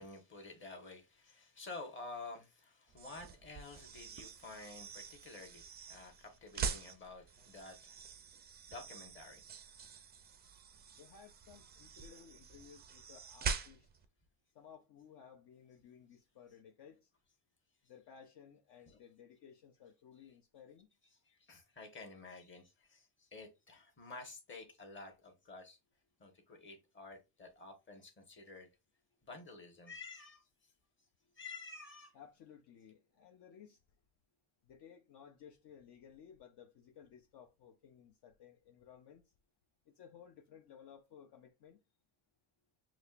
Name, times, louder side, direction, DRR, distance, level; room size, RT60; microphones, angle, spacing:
voice 1, 0.0-8.0 8.7-9.4 18.9-19.0 21.2-25.8 26.2-28.7 29.2-30.5 31.4-32.1, left 3 dB, 25° left, 1.2 m, -51 dB
sound 1, 2.9-14.1, right 6 dB, 25° right, 0.4 m, -45 dB
voice 2, 10.9-13.9 14.5-17.1 17.9-20.9 31.2-31.4 32.1-33.8 34.7-39.2 40.0-41.8, left 8 dB, 55° left, 0.8 m, -58 dB
6.3 x 3.0 x 2.4 m
cardioid pair, 145°, 46 cm